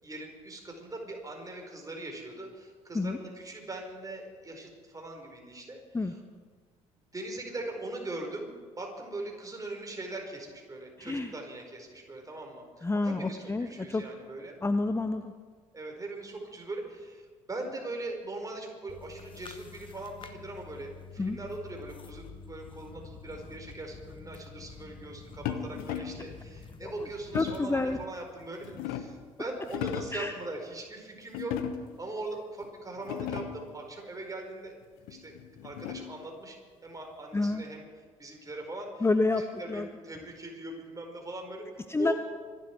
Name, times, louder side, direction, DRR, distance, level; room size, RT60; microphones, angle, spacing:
voice 1, 0.0-6.2 7.1-8.5 8.8-14.6 15.7-31.6 32.0-34.8 35.1-35.3 35.6-37.8 38.2-39.1 39.4-42.1, right 2 dB, 20° right, 2 dB, 4.7 m, -40 dB
voice 2, 11.0-11.3 12.8-14.0 14.6-15.3 21.2-21.4 26.8-26.9 27.3-28.0 30.1-30.3 37.3-37.6 39.0-39.4 39.7-39.9 41.9-42.1, left 3 dB, 15° left, 9 dB, 0.8 m, -28 dB
sound 1, 18.9-28.0, left 5 dB, 30° left, 1.1 m, -48 dB
sound 2, 25.5-26.3 27.3-27.8 28.4-29.3 29.6-30.3 31.3-32.0 32.6-32.7 33.0-33.7 35.1-36.2, left 10 dB, 65° left, 1.0 m, -36 dB
25.5 x 11.5 x 4.7 m, 1.5 s
figure-of-eight pair, 50°, 16 cm